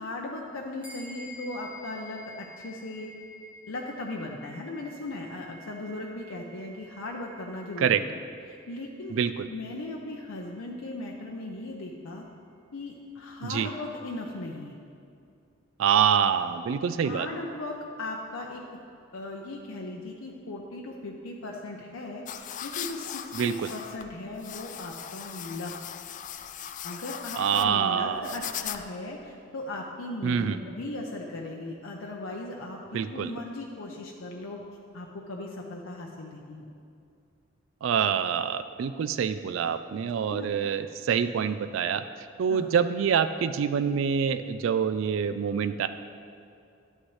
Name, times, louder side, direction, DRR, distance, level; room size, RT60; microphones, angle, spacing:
voice 1, 0.0-3.1 3.7-8.1 8.5-9.2 9.5-12.2 12.7-14.8 17.0-18.6 19.1-25.7 26.8-34.6 34.9-36.7 40.3-40.5 42.5-42.7, left 2 dB, 90° left, 0 dB, 0.7 m, -38 dB
sound 1, 0.8-10.6, left 1 dB, 10° right, 1.2 m, -50 dB
voice 2, 9.1-9.5 13.4-13.7 15.8-17.3 23.3-23.7 27.4-28.4 30.2-30.6 32.9-33.3 37.8-42.0 42.4-45.9, right 7 dB, 70° right, 11 dB, 0.3 m, -26 dB
sound 2, 22.3-29.1, left 9 dB, 40° left, 0.3 m, -39 dB
11.5 x 8.8 x 3.2 m, 2.5 s
head